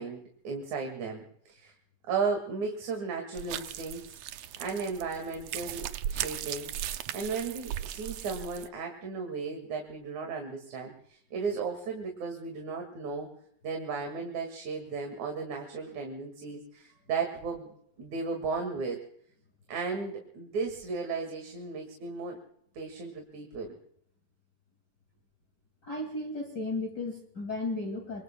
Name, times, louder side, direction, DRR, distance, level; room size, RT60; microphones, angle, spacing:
voice 1, 0.0-1.7 2.1-4.2 4.6-6.7 7.1-13.3 13.6-19.0 19.7-22.4 22.7-23.8, right 4 dB, 60° right, 3 dB, 3.3 m, -35 dB
sound 1, 3.3-8.7, right 11 dB, 90° right, 1.4 m, -37 dB
voice 2, 25.8-28.2, left 2 dB, 35° left, 1 dB, 2.6 m, -34 dB
26.0 x 24.0 x 2.3 m, 0.67 s
omnidirectional pair, 4.0 m